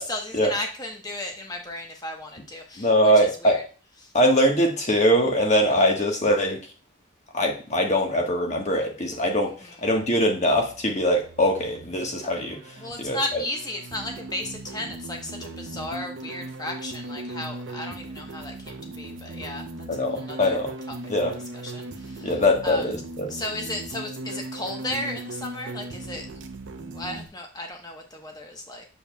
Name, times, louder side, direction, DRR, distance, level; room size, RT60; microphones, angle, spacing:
voice 1, 0.0-3.6 4.0-4.1 9.6-9.8 12.8-20.6 20.9-21.0 21.5-22.8 23.3-26.3 26.9-28.8, left 1 dB, 20° left, 2 dB, 1.0 m, -35 dB
voice 2, 2.8-3.6 4.1-6.6 7.3-13.4 19.9-20.7 21.1-21.3 22.2-23.3, equal, 35° left, 2 dB, 1.3 m, -22 dB
sound 1, 10.6-27.3, right 2 dB, 65° right, 0.7 m, -38 dB
6.9 x 6.9 x 2.3 m, 0.36 s
head